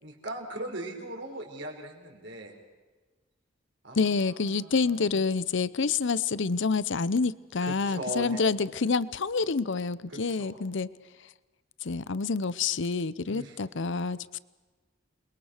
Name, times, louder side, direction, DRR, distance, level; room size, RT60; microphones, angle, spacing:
voice 1, 0.0-2.5 3.8-5.2 7.7-8.4 10.1-10.6 13.2-13.6, right 1 dB, 65° right, 2 dB, 5.0 m, -39 dB
voice 2, 3.9-10.9 11.8-14.4, left 4 dB, 65° left, 18 dB, 0.7 m, -28 dB
28.5 x 22.0 x 6.5 m, 1.3 s
head